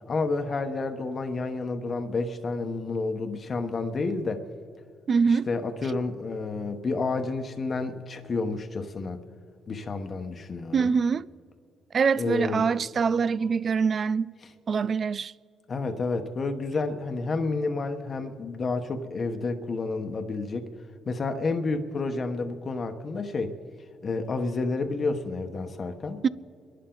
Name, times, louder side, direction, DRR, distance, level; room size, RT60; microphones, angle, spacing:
voice 1, 0.1-4.4 5.3-9.2 9.7-10.9 12.2-12.6 15.7-20.7 21.1-23.5 24.0-26.2, left 3 dB, 40° left, 1.1 m, -30 dB
voice 2, 5.1-5.5 10.7-11.3 11.9-14.3 14.7-15.3 26.2-26.3, right 5 dB, 45° right, 0.4 m, -24 dB
27.5 x 11.5 x 3.9 m
cardioid pair, 90°, 0 cm